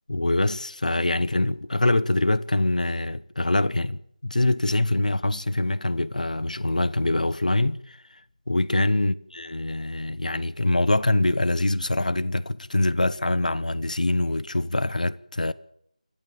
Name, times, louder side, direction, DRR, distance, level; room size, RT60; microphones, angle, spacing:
voice 1, 0.1-8.0 8.5-15.5, left 2 dB, 75° left, 1.1 m, -24 dB
28.0 x 12.5 x 7.7 m
figure-of-eight pair, 175°, 4 cm